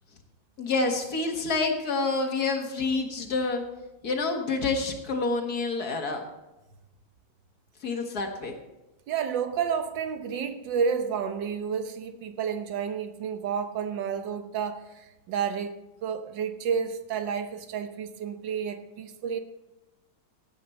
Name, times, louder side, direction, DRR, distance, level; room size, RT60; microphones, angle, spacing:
voice 1, 0.6-3.6 4.0-6.2 7.8-8.5, left 3 dB, 55° left, 2.0 m, -28 dB
voice 2, 9.1-19.4, right 7 dB, 70° right, 1.7 m, -30 dB
16.5 x 8.7 x 4.4 m
omnidirectional pair, 2.1 m